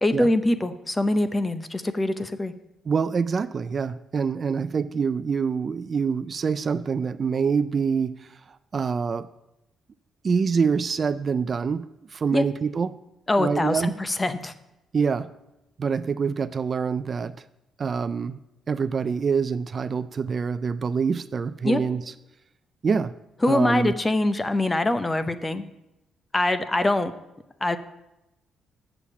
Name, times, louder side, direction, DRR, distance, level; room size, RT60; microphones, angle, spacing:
voice 1, 0.0-2.5 12.3-12.4 13.3-14.5 21.6-21.8 23.4-25.6 26.3-27.1 27.6-27.8, left 1 dB, 20° left, 11 dB, 0.7 m, -23 dB
voice 2, 2.9-8.1 8.7-9.3 10.2-12.9 13.4-13.9 14.9-15.3 15.8-17.3 17.8-18.4 18.7-22.0 22.8-23.1 23.5-23.9, right 5 dB, 40° right, 13 dB, 0.3 m, -25 dB
7.1 x 6.7 x 7.0 m, 0.91 s
cardioid pair, 90°, 0 cm